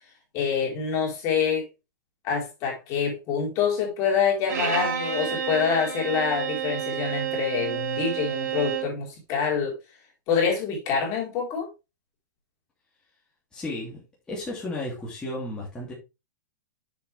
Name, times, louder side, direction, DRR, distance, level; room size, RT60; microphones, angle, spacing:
voice 1, 0.3-1.6 2.2-9.7 10.3-11.7, left 6 dB, 30° left, 4.2 m, -26 dB
Bowed string instrument, 4.5-9.0, right 8 dB, 65° right, 3.9 m, -30 dB
voice 2, 13.5-14.0 14.3-15.9, left 1 dB, 10° left, 2.8 m, -33 dB
7.6 x 7.0 x 3.4 m
hypercardioid pair, 155°, 10 cm